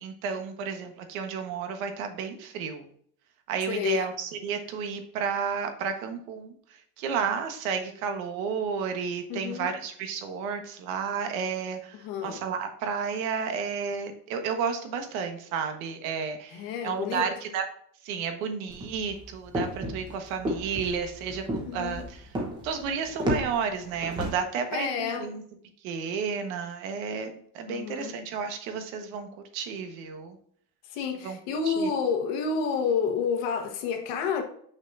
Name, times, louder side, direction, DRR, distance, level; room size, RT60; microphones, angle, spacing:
voice 1, 0.0-2.9 3.5-17.6 18.0-22.3 22.6-25.4 25.8-30.4 31.2-31.4 31.7-31.9, right 6 dB, 80° right, 1.4 m, -32 dB
voice 2, 3.7-4.0 9.3-9.7 12.0-12.4 16.5-17.3 21.6-22.1 24.7-25.3 27.7-28.1 30.9-34.4, left 6 dB, 60° left, 1.3 m, -29 dB
sound 1, 18.7-24.3, equal, 10° right, 0.9 m, -32 dB
6.2 x 6.2 x 2.6 m
cardioid pair, 180°, 41 cm